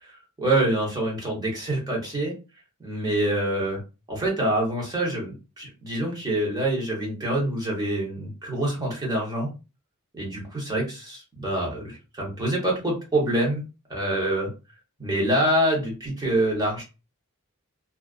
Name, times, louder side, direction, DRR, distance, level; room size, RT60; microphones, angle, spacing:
voice 1, 0.0-2.3 2.8-3.8 4.1-9.5 10.1-13.6 13.9-14.5 15.0-16.8, right 1 dB, 20° right, -3 dB, 1.0 m, -26 dB
2.4 x 2.1 x 2.4 m, 0.30 s
head